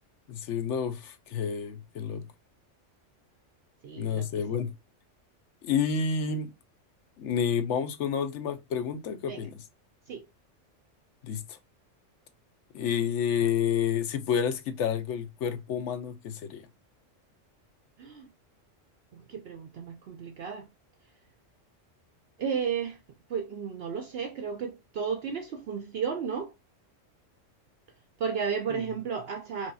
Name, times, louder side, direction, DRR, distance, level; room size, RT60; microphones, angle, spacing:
voice 1, 0.3-2.3 4.0-4.7 5.6-6.5 7.2-9.6 11.2-11.6 12.7-16.7, left 7 dB, 70° left, 1.0 m, -29 dB
voice 2, 3.8-4.3 9.3-9.5 10.1-10.3 18.0-18.3 19.3-20.7 22.4-23.0 23.3-26.5 28.2-29.7, right 6 dB, 65° right, 0.7 m, -33 dB
4.5 x 3.0 x 2.7 m
omnidirectional pair, 1.3 m